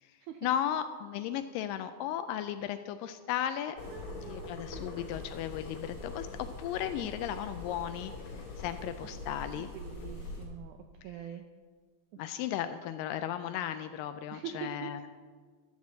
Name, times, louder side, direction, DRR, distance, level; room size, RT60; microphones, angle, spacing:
voice 1, 0.4-3.8 4.3-6.3 6.6-8.1 8.6-9.7 12.2-15.0, left 10 dB, 80° left, 10 dB, 2.0 m, -35 dB
sound 1, 3.8-10.5, left 3 dB, 45° left, 4.6 m, -43 dB
voice 2, 3.8-4.9 7.0-7.1 9.0-10.8 11.0-11.4 14.3-15.0, right 9 dB, 80° right, 5 dB, 1.8 m, -44 dB
12.5 x 7.3 x 7.4 m, 1.5 s
omnidirectional pair, 4.3 m